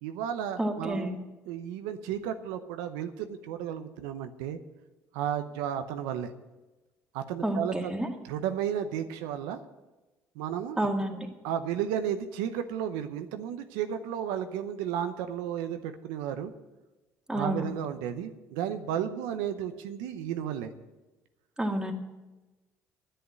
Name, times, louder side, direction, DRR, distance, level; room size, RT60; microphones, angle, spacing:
voice 1, 0.0-4.6 5.1-6.3 7.1-7.9 8.2-9.6 10.4-10.9 11.4-16.5 17.3-20.7, right 9 dB, 90° right, 8 dB, 0.8 m, -33 dB
voice 2, 0.6-1.2 7.4-8.1 10.8-11.3 17.3-17.6 21.6-21.9, right 1 dB, 10° right, 2 dB, 2.0 m, -29 dB
9.9 x 7.9 x 9.5 m, 1.1 s
supercardioid pair, 85°, 7 cm